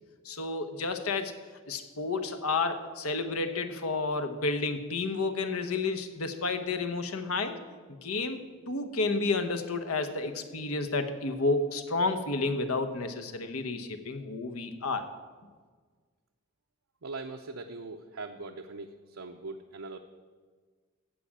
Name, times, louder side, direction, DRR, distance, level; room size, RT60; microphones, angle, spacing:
voice 1, 0.2-1.3 1.7-7.6 8.0-8.4 8.7-15.0, left 3 dB, 85° left, 8 dB, 1.1 m, -31 dB
voice 2, 17.0-20.0, right 3 dB, 70° right, 3 dB, 0.7 m, -41 dB
14.5 x 5.1 x 8.7 m, 1.5 s
head